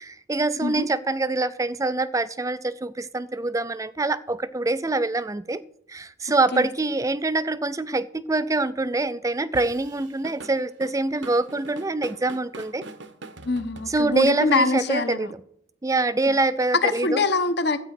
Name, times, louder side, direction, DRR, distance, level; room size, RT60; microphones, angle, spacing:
voice 1, 0.0-5.6 5.9-12.8 13.9-15.4 15.8-17.2, right 2 dB, 15° right, 0.4 m, -25 dB
Drum kit / Drum, 9.5-14.4, right 3 dB, 60° right, 1.0 m, -42 dB
voice 2, 13.4-15.3 16.3-16.4 16.8-17.8, left 3 dB, 55° left, 1.0 m, -24 dB
13.0 x 8.8 x 5.9 m
head